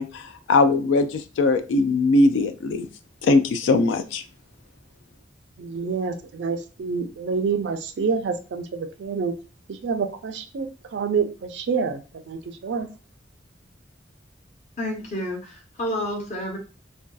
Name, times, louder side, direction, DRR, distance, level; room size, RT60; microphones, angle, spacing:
voice 1, 0.0-2.9 3.2-4.2, left 3 dB, 90° left, 10 dB, 0.3 m, -20 dB
voice 2, 5.6-9.3 9.7-12.9, right 5 dB, 70° right, 8 dB, 0.4 m, -27 dB
voice 3, 14.8-16.6, left 1 dB, 40° left, 0 dB, 0.7 m, -30 dB
2.6 x 2.2 x 2.2 m, 0.34 s
head